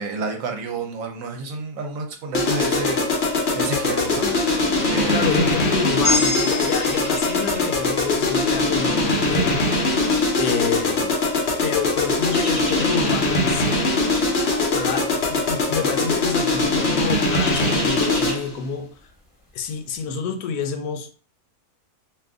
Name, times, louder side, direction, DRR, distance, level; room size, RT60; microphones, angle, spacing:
voice 1, 0.0-4.6 4.9-5.5, right 3 dB, 70° right, 1.0 m, -30 dB
sound 1, 2.3-18.5, left 2 dB, 50° left, 0.9 m, -21 dB
voice 2, 5.1-10.0 10.4-11.1 11.6-13.9 14.7-19.0 19.5-21.1, left 6 dB, 80° left, 1.1 m, -28 dB
sound 2, 6.0-10.3, left 2 dB, 15° right, 1.1 m, -29 dB
sound 3, 6.7-8.0 8.3-8.6 9.3-10.9 11.9-13.4 13.8-14.1 14.4-14.5 15.5-15.9 16.2-16.3 16.8-19.1 19.5-19.6, equal, 25° left, 1.0 m, -36 dB
2.6 x 2.5 x 3.5 m
omnidirectional pair, 1.6 m